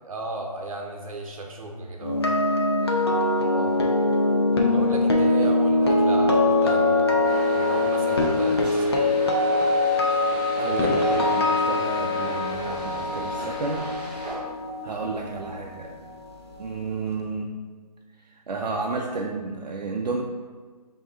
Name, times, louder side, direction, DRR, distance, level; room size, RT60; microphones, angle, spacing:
voice 1, 0.1-2.2 4.7-8.9 10.6-11.0, right 2 dB, 55° right, 1 dB, 0.9 m, -35 dB
sound 1, 2.0-16.1 16.3-16.6, left 2 dB, 40° left, 0.5 m, -23 dB
sound 2, 7.2-14.3, right 1 dB, 5° right, 0.9 m, -39 dB
voice 2, 10.6-13.9 14.8-16.0 16.6-17.5 18.2-20.2, right 3 dB, 75° right, 0 dB, 0.5 m, -31 dB
4.7 x 2.9 x 3.9 m, 1.5 s
figure-of-eight pair, 170°, 21 cm